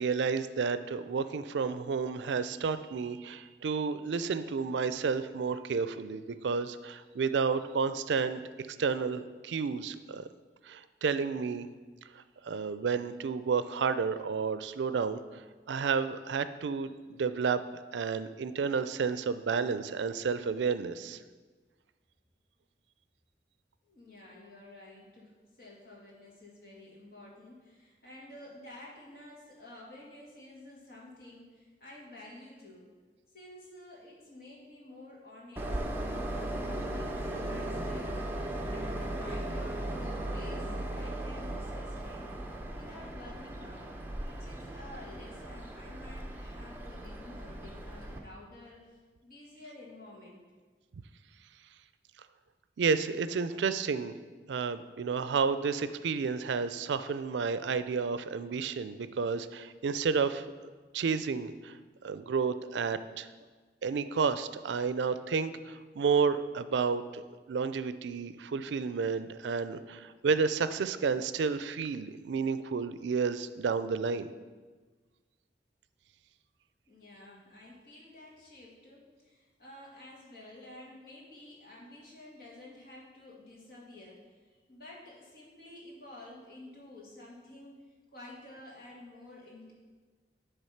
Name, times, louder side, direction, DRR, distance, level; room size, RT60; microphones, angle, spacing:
voice 1, 0.0-10.3 10.7-11.7 12.1-17.6 17.9-21.2 52.8-54.1 54.5-60.5 60.9-61.8 62.0-63.3 63.8-67.2 67.5-74.3, right 5 dB, 90° right, 12 dB, 0.4 m, -31 dB
voice 2, 23.8-32.9 33.3-35.8 36.2-42.3 42.7-43.9 44.3-50.4 76.9-87.9 88.1-89.7, left 1 dB, 55° left, -4 dB, 2.1 m, -51 dB
Train, 35.6-48.2, right 1 dB, 10° right, 0.6 m, -37 dB
10.5 x 3.5 x 5.7 m, 1.4 s
head